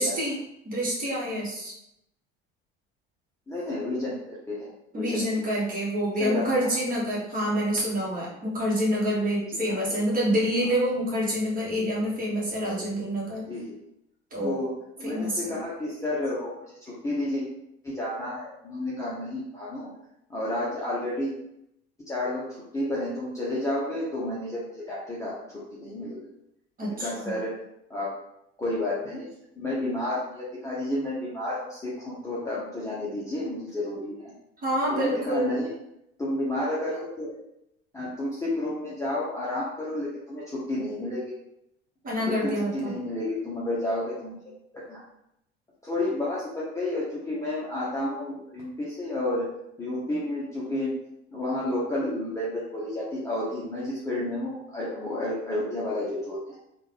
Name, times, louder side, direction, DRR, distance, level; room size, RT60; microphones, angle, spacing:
voice 1, 0.0-1.7 4.9-13.5 14.3-14.6 15.0-15.5 26.8-27.4 34.6-35.6 42.0-42.9, equal, 25° right, -5 dB, 1.4 m, -27 dB
voice 2, 3.5-5.3 6.2-6.5 9.5-10.0 13.5-13.8 14.4-14.7 15.0-16.7 17.0-17.4 17.8-19.9 20.3-21.3 22.1-26.2 26.8-27.5 27.9-28.1 28.6-29.3 29.5-34.3 34.9-35.7 36.2-37.4 37.9-41.3 42.2-44.3 44.7-45.0 45.8-49.5 49.8-50.9 51.3-56.6, left 1 dB, 10° left, -8 dB, 0.8 m, -31 dB
3.5 x 2.5 x 3.3 m, 0.81 s
figure-of-eight pair, 65°, 32 cm